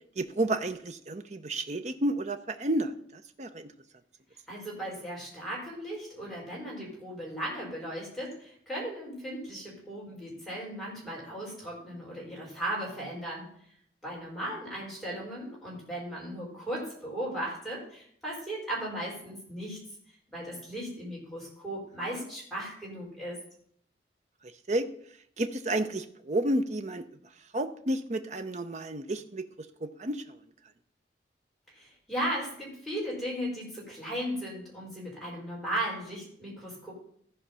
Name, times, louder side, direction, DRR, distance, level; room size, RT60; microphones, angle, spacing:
voice 1, 0.2-3.7 24.7-24.9 25.4-27.0 27.5-29.4 29.8-30.2, right 1 dB, 40° right, 9 dB, 0.7 m, -31 dB
voice 2, 4.5-13.5 14.0-19.8 20.3-23.4 31.7-36.9, right 1 dB, ahead, -6 dB, 4.3 m, -36 dB
14.5 x 4.9 x 5.6 m, 0.65 s
head